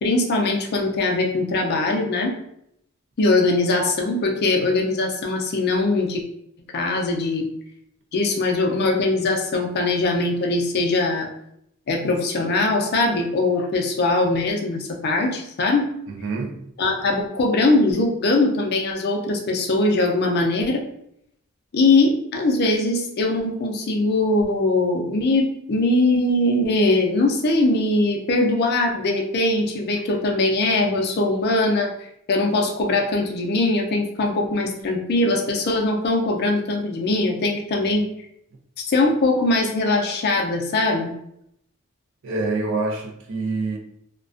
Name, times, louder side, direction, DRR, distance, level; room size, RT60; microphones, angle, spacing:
voice 1, 0.0-2.3 3.2-6.2 6.7-7.5 8.1-11.3 11.9-15.9 16.8-20.8 21.7-31.9 32.3-38.1 38.8-41.2, left 2 dB, 45° left, 0.4 m, -21 dB
voice 2, 16.1-16.6 42.2-43.8, right 3 dB, 60° right, 0.4 m, -26 dB
2.4 x 2.2 x 2.4 m
head